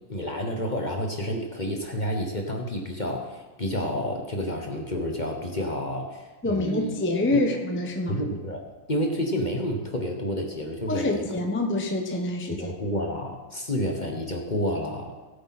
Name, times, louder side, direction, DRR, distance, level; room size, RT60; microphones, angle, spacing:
voice 1, 0.1-6.9 7.3-7.5 8.1-8.6 8.9-11.2 12.5-15.2, equal, 35° left, 2 dB, 0.8 m, -29 dB
voice 2, 6.4-8.2 10.9-12.7, left 2 dB, 15° left, 2 dB, 0.3 m, -26 dB
17.5 x 8.1 x 4.2 m, 1.2 s
omnidirectional pair, 2.3 m